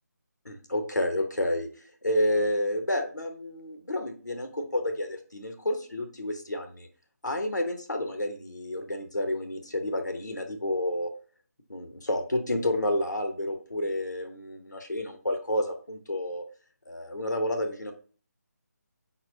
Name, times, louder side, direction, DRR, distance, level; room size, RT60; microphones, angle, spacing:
voice 1, 0.4-1.7 2.0-6.9 7.2-11.1 11.7-16.4 16.9-17.9, left 1 dB, 85° left, 5 dB, 0.9 m, -30 dB
4.1 x 4.1 x 2.7 m, 0.42 s
figure-of-eight pair, 155°, 9 cm